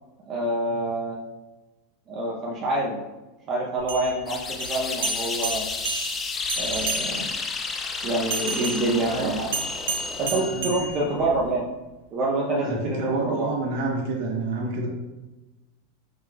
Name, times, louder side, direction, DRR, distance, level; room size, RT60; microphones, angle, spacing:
voice 1, 0.3-1.2 2.1-3.0 3.5-5.6 6.6-7.3 8.0-9.5 10.2-11.6 12.1-13.5, right 2 dB, 40° right, -4 dB, 0.6 m, -26 dB
sound 1, 3.8-7.5 8.3-11.5, right 3 dB, 90° right, 0.7 m, -32 dB
sound 2, 4.3-10.6, left 4 dB, 20° left, 0.4 m, -32 dB
voice 2, 9.0-9.3 10.2-10.7 10.9-11.0 12.6-14.9, right 3 dB, 60° right, -1 dB, 1.1 m, -29 dB
4.9 x 2.4 x 3.3 m, 1.1 s
supercardioid pair, 140°, 0 cm